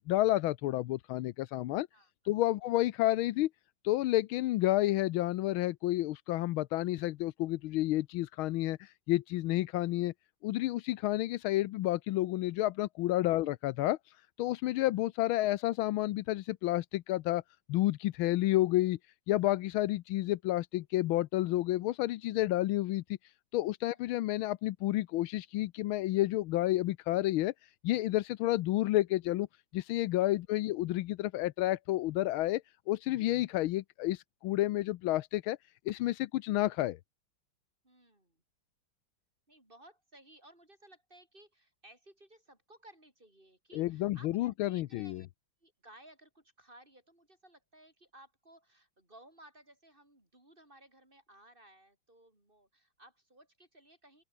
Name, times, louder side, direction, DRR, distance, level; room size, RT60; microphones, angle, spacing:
voice 1, 0.0-1.9 2.3-3.5 3.8-10.1 10.4-14.0 14.4-17.4 17.7-19.0 19.3-23.0 23.5-27.5 27.8-29.5 29.7-35.6 35.9-37.0 43.7-45.2, left 16 dB, 85° left, 1.5 m, -30 dB
voice 2, 37.8-38.4 39.5-45.3 45.6-54.2, right 1 dB, 25° right, 6.9 m, -59 dB
open air
omnidirectional pair, 2.2 m